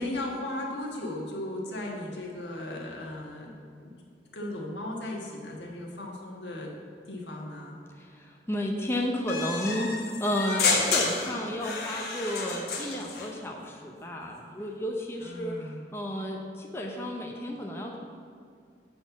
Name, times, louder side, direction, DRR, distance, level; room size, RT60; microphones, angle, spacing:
voice 1, 0.0-3.5 3.8-3.9 4.3-6.7 7.0-7.8 15.2-15.8, left 1 dB, 90° left, -1 dB, 1.5 m, -36 dB
voice 2, 7.9-18.0, left 1 dB, 15° left, 0 dB, 0.7 m, -32 dB
sound 1, 9.3-13.3, left 4 dB, 65° left, 1.2 m, -30 dB
7.7 x 4.3 x 7.0 m, 2.3 s
head